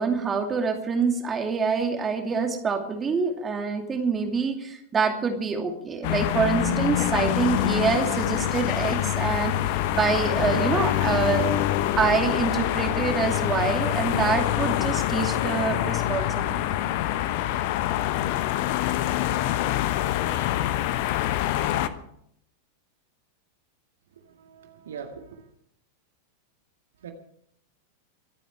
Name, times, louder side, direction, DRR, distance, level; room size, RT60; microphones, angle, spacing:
voice 1, 0.0-11.5 12.0-16.8, right 5 dB, 20° right, 4 dB, 2.6 m, -26 dB
sound 1, 6.0-21.9, left 13 dB, 50° left, 1.0 m, -25 dB
voice 2, 24.1-25.5 27.0-27.1, right 7 dB, 65° right, 4 dB, 1.9 m, -42 dB
25.0 x 9.1 x 4.8 m, 0.70 s
figure-of-eight pair, 90°, 0 cm